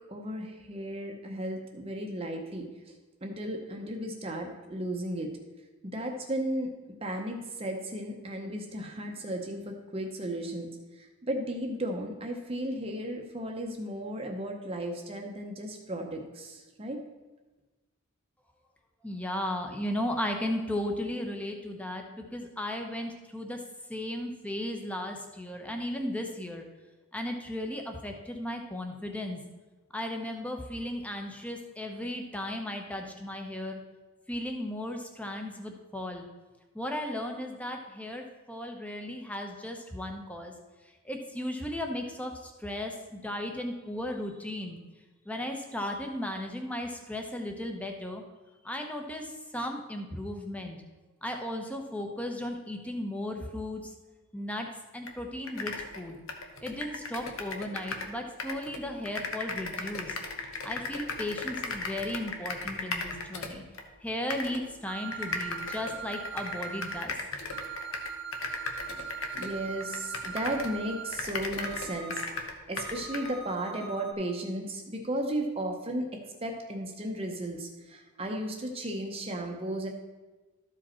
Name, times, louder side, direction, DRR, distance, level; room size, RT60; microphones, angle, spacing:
voice 1, 0.1-2.9 3.2-5.3 5.8-6.7 7.0-17.0 68.9-79.9, right 1 dB, 25° right, 2 dB, 0.8 m, -35 dB
voice 2, 19.0-23.6 23.9-26.7 27.1-29.4 29.9-33.8 34.3-36.2 36.7-40.5 41.0-44.8 45.3-48.2 48.6-50.8 51.2-53.9 54.3-54.7 54.9-56.2 56.6-60.2 60.6-63.6 64.0-67.1, left 1 dB, 5° left, 3 dB, 0.8 m, -35 dB
sound 1, 55.1-55.2 55.4-58.1 58.4-63.9 64.3-64.6 65.1-70.8 71.1-73.3, left 3 dB, 75° left, 1.0 m, -37 dB
sound 2, 64.9-67.0 67.5-71.1 71.6-72.3 72.8-74.1, right 6 dB, 50° right, 0.9 m, -41 dB
12.5 x 5.0 x 4.3 m, 1.2 s
head